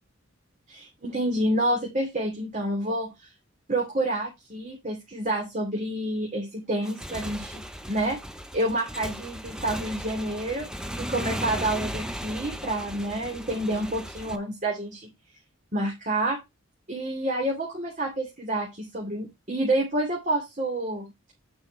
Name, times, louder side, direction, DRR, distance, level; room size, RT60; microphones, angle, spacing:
voice 1, 0.7-3.3 3.7-8.2 8.5-10.7 11.0-15.1 15.7-16.4 16.9-21.0, right 1 dB, 35° right, 0 dB, 2.7 m, -28 dB
Motorcycle / Engine, 6.7-14.4, equal, 5° right, 0.7 m, -36 dB
9.8 x 5.4 x 4.7 m, 0.22 s
head